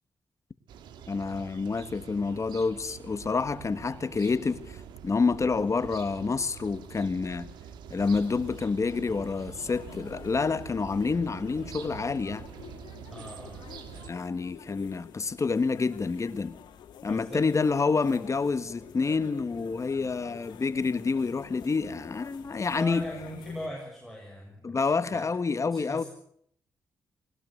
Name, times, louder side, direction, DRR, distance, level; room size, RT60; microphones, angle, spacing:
sound 1, 0.7-14.1, right 8 dB, 80° right, 1.9 m, -45 dB
voice 1, 1.1-4.8 5.0-7.5 7.9-12.5 14.0-16.6 17.0-23.0 24.6-26.0, left 4 dB, 40° left, 1.6 m, -28 dB
sound 2, 8.0-23.7, left 8 dB, 75° left, 2.5 m, -48 dB
voice 2, 13.1-13.7 17.0-17.5 22.5-25.3 25.6-26.1, left 1 dB, ahead, 7.5 m, -40 dB
20.0 x 19.0 x 8.1 m
supercardioid pair, 50°, 8 cm